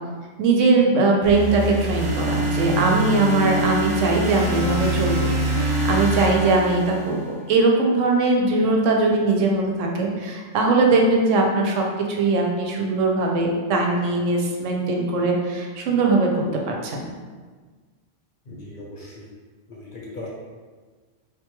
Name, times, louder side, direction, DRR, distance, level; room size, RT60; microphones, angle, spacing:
voice 1, 0.4-7.2 7.5-17.0, right 3 dB, 85° right, 0 dB, 0.9 m, -20 dB
sound 1, 1.2-7.4, right 1 dB, 50° right, 0.3 m, -25 dB
voice 2, 18.5-19.3 19.7-20.3, left 2 dB, 50° left, -4 dB, 0.7 m, -38 dB
3.8 x 2.2 x 2.9 m, 1.4 s
omnidirectional pair, 1.3 m